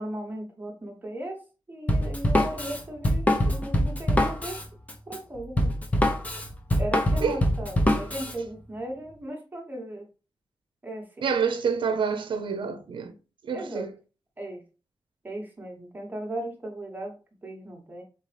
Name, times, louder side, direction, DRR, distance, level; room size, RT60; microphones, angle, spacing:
voice 1, 0.0-1.4 1.7-4.6 5.1-5.7 6.8-10.1 10.8-11.3 13.5-13.8 14.4-14.6 15.2-18.0, right 1 dB, 20° right, 1.1 m, -37 dB
Drum kit, 1.9-8.3, left 1 dB, 15° left, 0.8 m, -24 dB
voice 2, 11.2-13.1 13.5-13.9, right 6 dB, 70° right, 0.6 m, -27 dB
4.0 x 3.9 x 3.3 m
wide cardioid pair, 130°, 9 cm